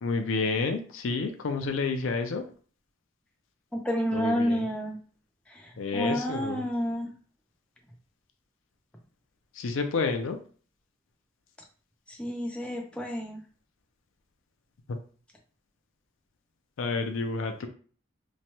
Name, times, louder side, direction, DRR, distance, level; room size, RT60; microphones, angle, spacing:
voice 1, 0.0-2.5 4.1-4.7 5.8-6.7 9.5-10.4 14.9-15.0 16.8-17.7, left 4 dB, 80° left, 7 dB, 0.4 m, -30 dB
voice 2, 3.7-5.0 5.5-7.1 12.1-13.4, equal, 5° left, 0 dB, 0.4 m, -30 dB
3.0 x 2.2 x 2.8 m, 0.41 s
head